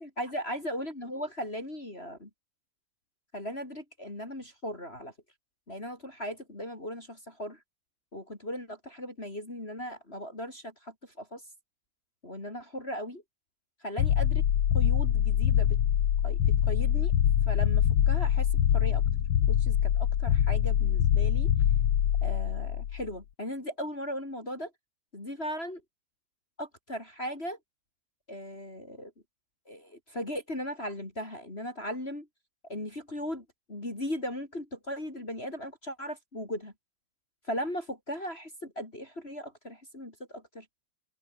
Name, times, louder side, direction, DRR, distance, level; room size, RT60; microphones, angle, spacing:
voice 1, 0.0-2.3 3.3-5.1 5.7-7.6 8.1-11.4 12.2-13.2 13.8-14.4 14.7-15.8 16.2-17.1 17.5-18.5 18.7-19.0 19.5-21.5 22.2-24.7 25.1-25.8 26.6-27.6 28.3-29.1 29.7-32.3 32.7-36.7 37.5-40.7, equal, 20° left, 3.9 m, -38 dB
sound 1, 14.0-23.1, left 10 dB, 55° left, 2.3 m, -24 dB
open air
omnidirectional pair, 3.4 m